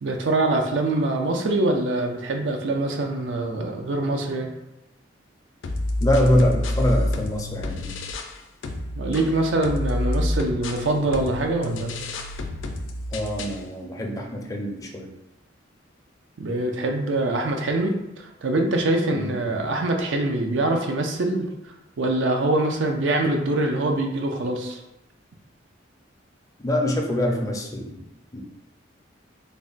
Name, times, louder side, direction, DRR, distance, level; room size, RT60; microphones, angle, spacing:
voice 1, 0.0-4.5 9.0-12.0 16.4-21.5 22.0-24.8, right 2 dB, 70° right, 3 dB, 0.5 m, -24 dB
sound 1, 5.6-8.4 8.6-13.6, left 1 dB, 80° left, 0.4 m, -28 dB
voice 2, 6.0-7.9 13.1-15.1 19.1-19.4 26.6-28.0 28.3-28.4, left 1 dB, 20° left, 0 dB, 0.4 m, -24 dB
3.4 x 2.1 x 3.9 m, 0.90 s
head